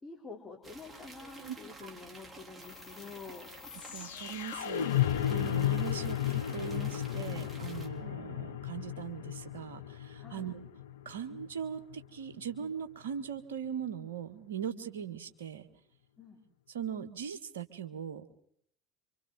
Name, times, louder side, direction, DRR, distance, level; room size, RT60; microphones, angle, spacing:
voice 1, 0.0-3.5 10.2-10.5 16.2-16.4, left 4 dB, 20° left, -1 dB, 4.4 m, -48 dB
sound 1, 0.6-7.9, right 2 dB, 20° right, 3.5 m, -51 dB
voice 2, 1.4-1.9 3.9-10.6 11.0-15.7 16.7-18.3, right 8 dB, 80° right, 8 dB, 1.4 m, -40 dB
sound 2, 2.6-12.7, left 11 dB, 75° left, 0.8 m, -34 dB
27.5 x 25.5 x 4.1 m, 0.68 s
hypercardioid pair, 70°, 0 cm